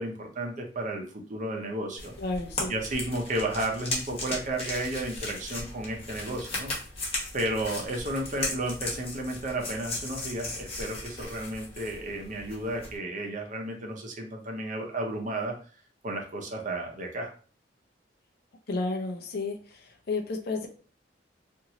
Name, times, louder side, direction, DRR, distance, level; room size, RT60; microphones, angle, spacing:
voice 1, 0.0-2.1 2.7-6.7 7.3-15.5 16.0-17.3, right 1 dB, 45° right, 1 dB, 0.7 m, -33 dB
sound 1, 2.0-13.0, left 2 dB, 35° left, 1.0 m, -37 dB
voice 2, 2.2-2.7 18.7-19.8 20.1-20.7, left 3 dB, 60° left, 4 dB, 0.5 m, -31 dB
2.9 x 2.6 x 2.8 m, 0.39 s
head